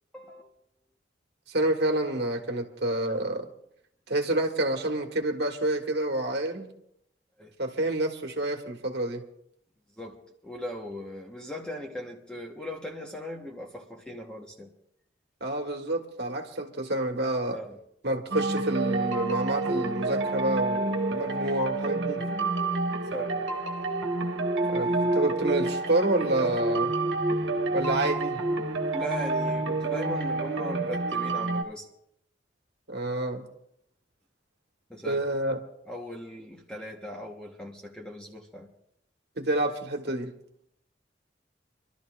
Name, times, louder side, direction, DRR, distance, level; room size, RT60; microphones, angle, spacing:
voice 1, 0.1-0.5 7.4-7.5 10.0-14.7 17.5-17.8 23.1-23.4 28.9-31.8 34.9-35.2 35.9-38.7, left 1 dB, 5° left, 1.2 m, -38 dB
voice 2, 1.5-3.5 4.1-6.7 7.6-9.2 15.4-17.6 18.0-22.2 24.7-26.9 27.7-28.4 32.9-33.4 35.0-35.6 39.4-40.3, right 1 dB, 65° right, 1.5 m, -28 dB
sound 1, 18.3-31.6, right 2 dB, 80° right, 1.4 m, -28 dB
27.5 x 12.5 x 2.5 m
head